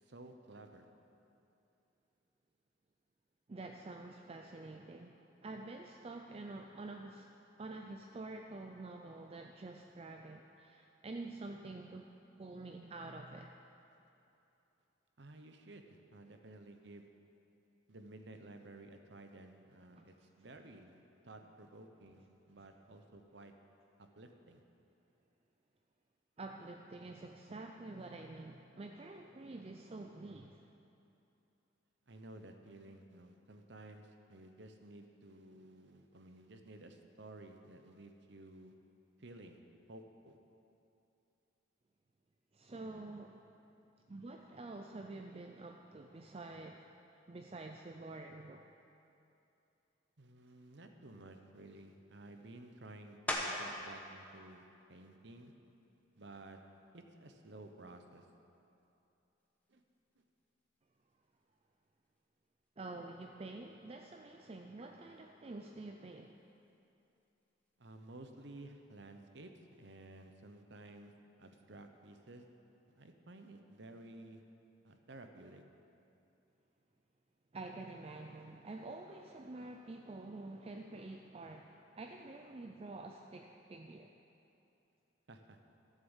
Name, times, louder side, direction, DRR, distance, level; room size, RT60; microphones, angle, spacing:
voice 1, 0.1-0.9 15.2-17.1 17.9-23.5 24.0-24.6 32.1-38.7 39.2-39.6 39.9-40.4 50.2-54.6 54.9-55.5 56.2-56.6 56.9-58.2 59.7-59.8 67.8-71.1 71.4-72.4 72.9-74.4 74.8-75.6 85.3-85.6, right 2 dB, 60° right, 6 dB, 0.9 m, -54 dB
voice 2, 3.5-7.3 7.6-12.1 12.4-13.5 20.0-20.1 26.4-30.7 42.5-43.5 44.1-46.9 47.3-48.6 53.4-53.8 62.8-66.4 77.5-84.1, right 2 dB, 30° right, 3 dB, 0.4 m, -48 dB
sound 1, 53.3-53.9 54.4-58.9 59.4-64.5 64.8-70.5, left 1 dB, 10° left, 1.0 m, -48 dB
12.5 x 7.6 x 7.2 m, 2.8 s
head